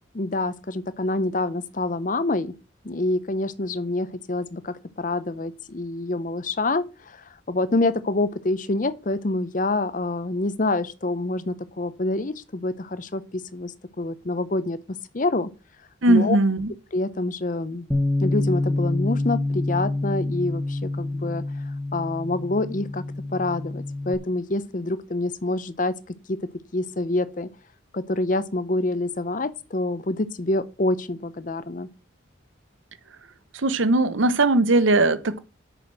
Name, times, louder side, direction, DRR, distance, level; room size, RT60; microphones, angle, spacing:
voice 1, 0.1-2.5 2.8-7.2 7.5-14.8 15.1-15.5 16.1-16.4 16.9-17.9 18.2-21.4 21.9-23.0 23.3-25.9 26.3-26.4 26.7-27.5 27.9-31.9, left 2 dB, 40° left, 0.7 m, -26 dB
voice 2, 16.0-16.7 33.6-35.4, right 2 dB, 75° right, 0.9 m, -19 dB
Bass guitar, 17.9-24.2, left 2 dB, 5° left, 1.1 m, -27 dB
6.8 x 6.2 x 7.6 m
head